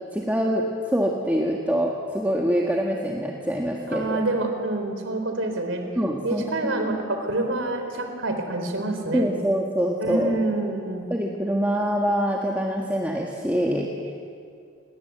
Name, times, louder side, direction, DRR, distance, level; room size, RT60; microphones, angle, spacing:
voice 1, 0.1-4.2 6.0-6.7 9.1-10.4 11.1-13.9, equal, 10° right, -1 dB, 1.6 m, -25 dB
voice 2, 3.9-5.8 6.2-9.3 10.0-11.1, right 2 dB, 80° right, 5 dB, 4.0 m, -27 dB
28.0 x 20.5 x 8.0 m, 2.3 s
head